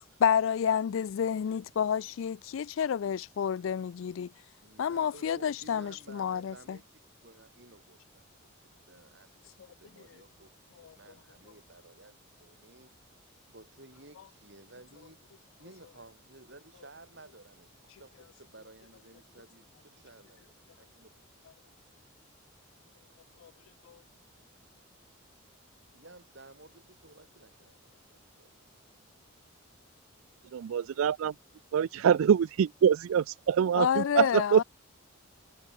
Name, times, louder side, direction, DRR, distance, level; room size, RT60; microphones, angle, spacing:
voice 1, 0.2-4.3 4.8-6.8 10.8-10.9 23.4-23.5 23.9-24.0 33.7-34.6, left 8 dB, 70° left, 0.3 m, -29 dB
voice 2, 4.6-8.2 8.6-10.5 10.8-12.9 13.5-15.2 15.6-21.3 25.9-28.5 30.5-30.6, right 2 dB, 55° right, 4.7 m, -55 dB
voice 3, 30.5-31.3 31.7-34.6, right 8 dB, 80° right, 0.3 m, -25 dB
head